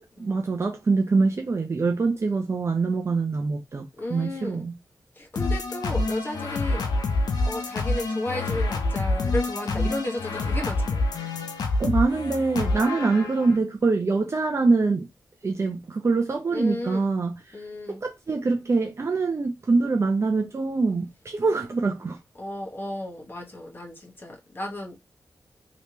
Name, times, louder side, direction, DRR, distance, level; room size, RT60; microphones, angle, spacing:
voice 1, 0.2-4.7 11.8-15.1 15.4-17.6 17.9-22.2, right 3 dB, 45° right, 0.6 m, -24 dB
voice 2, 4.0-4.7 5.1-11.0 16.5-17.1 17.5-18.0 22.4-25.0, left 1 dB, 30° left, 1.4 m, -34 dB
sound 1, 5.4-13.6, left 2 dB, 85° left, 0.8 m, -27 dB
3.3 x 3.0 x 2.9 m
cardioid pair, 60°, 7 cm